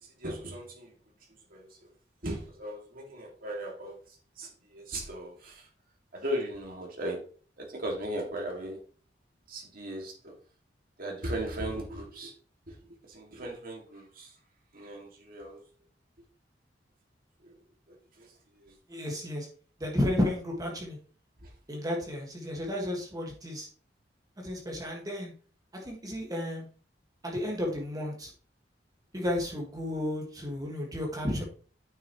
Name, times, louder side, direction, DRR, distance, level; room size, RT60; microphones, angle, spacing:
voice 1, 0.0-0.9 1.5-1.9 2.2-5.7 6.1-7.2 7.6-8.8 9.5-10.4 11.0-12.3 12.7-14.3 14.7-15.6 17.4-17.6 17.9-18.8 21.4-21.5, right 1 dB, 55° right, 0 dB, 2.3 m, -38 dB
voice 2, 18.9-19.5 19.8-21.0 21.7-23.7 24.4-25.3 25.8-26.6 27.2-28.3 29.1-31.4, left 1 dB, 20° right, -1 dB, 1.8 m, -32 dB
9.1 x 6.2 x 3.1 m, 0.42 s
head